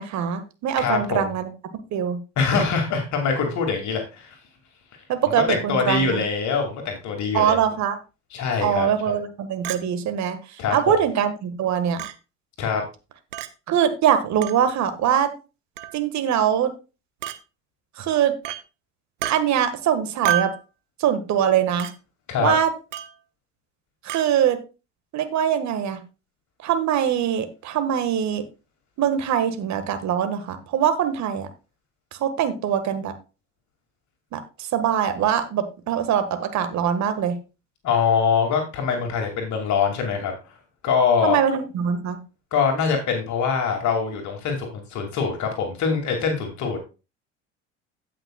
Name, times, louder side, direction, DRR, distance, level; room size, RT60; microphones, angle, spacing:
voice 1, 0.0-1.5 1.9-2.2 5.1-6.2 7.3-8.0 8.6-10.4 10.7-12.0 13.7-15.3 15.9-16.7 18.0-18.3 19.3-20.5 21.0-21.9 22.4-22.7 24.0-24.6 25.1-26.0 26.6-28.4 29.0-31.5 32.2-33.1 34.3-34.4 34.7-37.4 41.2-42.2, right 9 dB, 50° right, 9 dB, 1.6 m, -22 dB
voice 2, 0.8-1.3 2.4-4.4 5.3-7.6 8.3-9.1 10.6-11.0 12.6-12.8 22.3-22.5 37.8-40.3 40.8-41.4 42.5-46.8, left 5 dB, 50° left, 3 dB, 2.4 m, -23 dB
Chink clink, 9.6-9.8 10.7-10.8 12.0-12.1 13.3-13.5 14.4-14.6 15.8-16.0 17.2-17.4 18.4-18.6 19.2-19.4 20.2-20.6 21.8-21.9 22.9-23.1 24.1-24.3, right 12 dB, 80° right, 0.8 m, -28 dB
17.0 x 5.9 x 2.3 m, 0.29 s
hypercardioid pair, 65°, 36 cm